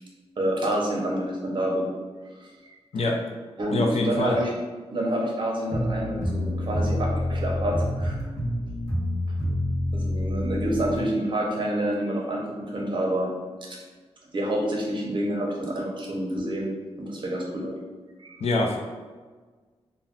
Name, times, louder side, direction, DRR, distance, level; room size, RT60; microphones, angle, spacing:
voice 1, 0.4-1.9 2.4-2.5 3.6-4.5 4.9-8.2 9.9-13.3 14.3-17.8 18.2-18.4, right 1 dB, 50° right, -2 dB, 0.6 m, -28 dB
voice 2, 3.7-4.4 18.4-18.8, left 2 dB, 75° left, 0 dB, 0.4 m, -24 dB
sound 1, 5.7-11.0, left 1 dB, 35° left, 0.9 m, -27 dB
2.3 x 2.2 x 3.5 m, 1.4 s
wide cardioid pair, 145°, 11 cm